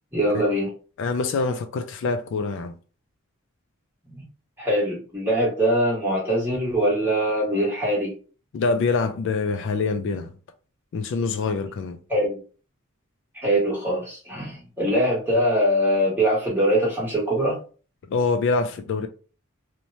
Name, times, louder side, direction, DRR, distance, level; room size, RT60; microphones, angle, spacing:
voice 1, 0.1-0.7 4.6-8.1 12.1-12.4 13.3-17.6, equal, 10° right, 1.3 m, -22 dB
voice 2, 1.0-2.7 8.5-10.3 10.9-12.0 18.1-19.1, left 4 dB, 60° left, 0.3 m, -25 dB
2.9 x 2.1 x 2.6 m
head